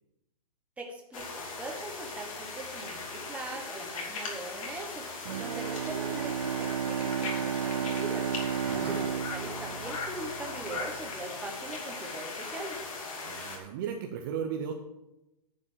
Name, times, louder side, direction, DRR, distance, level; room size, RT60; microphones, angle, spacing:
voice 1, 0.8-12.8, right 2 dB, 5° right, 1 dB, 1.2 m, -41 dB
sound 1, 1.1-13.6, left 3 dB, 50° left, 2.6 m, -39 dB
Bowed string instrument, 5.2-10.8, right 9 dB, 55° right, 0.4 m, -33 dB
voice 2, 8.6-9.0 13.2-14.7, right 7 dB, 30° right, 4 dB, 0.7 m, -35 dB
9.9 x 5.1 x 7.3 m, 0.94 s
hypercardioid pair, 155°, 21 cm